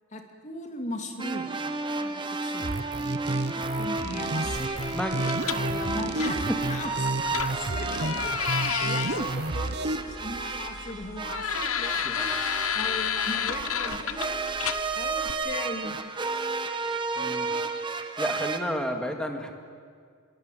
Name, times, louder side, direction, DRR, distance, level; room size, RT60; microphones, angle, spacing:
voice 1, 0.1-1.5 2.0-2.8 3.3-4.9 5.5-6.4 6.7-7.1 7.4-8.3 8.8-12.3 12.7-14.4 14.9-16.0, left 1 dB, 35° left, 4 dB, 2.6 m, -38 dB
sound 1, 1.2-18.6, right 3 dB, 20° right, 1.3 m, -32 dB
sound 2, 2.6-10.0, right 2 dB, 50° right, 1.0 m, -31 dB
sound 3, 4.6-15.3, left 8 dB, 70° left, 1.1 m, -32 dB
voice 2, 4.9-5.3 6.5-6.6 12.0-12.2 17.2-17.5 18.2-19.5, equal, 5° left, 4 dB, 2.2 m, -31 dB
25.5 x 22.5 x 9.4 m, 2.1 s
head